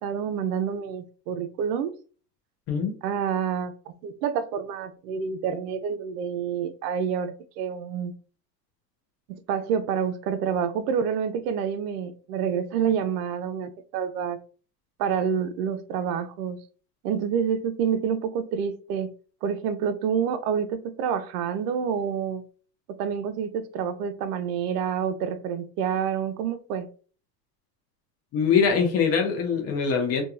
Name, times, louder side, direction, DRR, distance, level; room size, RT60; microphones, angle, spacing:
voice 1, 0.0-1.9 3.0-8.1 9.5-14.4 15.0-16.6 17.0-19.1 19.4-22.4 22.9-26.9, right 7 dB, 70° right, 0.5 m, -28 dB
voice 2, 28.3-30.2, left 6 dB, 30° left, 0.5 m, -23 dB
2.8 x 2.2 x 2.4 m
supercardioid pair, 115°, 50 cm